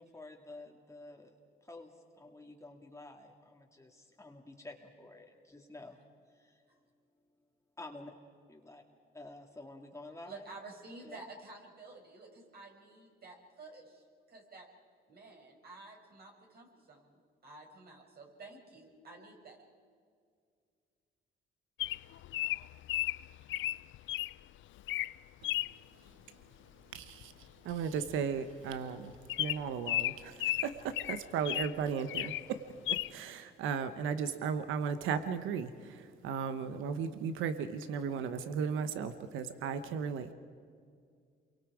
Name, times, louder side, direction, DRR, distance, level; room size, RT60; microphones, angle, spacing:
voice 1, 0.0-1.4 1.6-6.0 6.3-6.6 7.8-8.1 8.5-8.8 9.1-10.4 11.0-11.2, left 2 dB, 15° left, 1 dB, 2.1 m, -50 dB
voice 2, 10.3-14.7 15.1-19.6, right 3 dB, 50° right, 1 dB, 6.0 m, -51 dB
Bird vocalization bird call bird song, 21.8-24.3 24.8-25.1 25.4-25.7 27.2-27.4 27.7-27.8 28.1-28.2 28.7-28.8 29.3-31.7 32.1-32.5 32.9-33.1, left 15 dB, 75° left, 0.5 m, -34 dB
voice 3, 26.9-27.3 27.6-29.1 29.4-32.6 33.1-40.3, right 6 dB, 90° right, 10 dB, 1.1 m, -35 dB
29.0 x 23.5 x 4.9 m, 2.2 s
cardioid pair, 90°, 20 cm